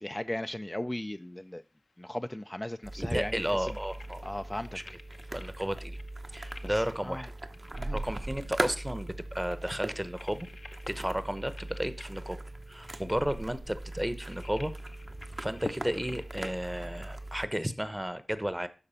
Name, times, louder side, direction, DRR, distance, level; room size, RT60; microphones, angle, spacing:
voice 1, 0.0-1.6 2.0-3.8 4.2-4.8 6.6-7.3 7.8-8.0, left 1 dB, 15° left, 0.4 m, -37 dB
sound 1, 0.9-17.6, left 3 dB, 75° left, 0.8 m, -50 dB
sound 2, 2.8-17.5, right 2 dB, 45° right, 0.9 m, -40 dB
voice 2, 3.0-4.3 4.7-4.8 5.3-6.0 6.3-7.3 7.9-10.5 10.9-12.4 12.7-14.7 15.4-18.7, equal, 10° right, 0.9 m, -33 dB
12.0 x 4.9 x 5.6 m
wide cardioid pair, 65°, 0 cm